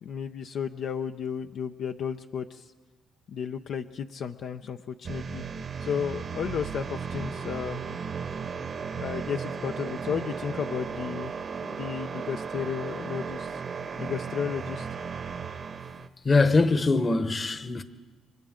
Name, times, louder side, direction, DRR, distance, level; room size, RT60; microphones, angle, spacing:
voice 1, 0.0-2.7 3.3-5.4 5.8-7.8 8.9-11.3 11.6-13.6 14.0-14.9, left 7 dB, 70° left, 0.5 m, -33 dB
sound 1, 5.0-16.1, right 6 dB, 50° right, 1.0 m, -35 dB
voice 2, 16.2-17.8, left 3 dB, 30° left, 1.1 m, -22 dB
30.0 x 25.0 x 3.7 m
cardioid pair, 90°, 0 cm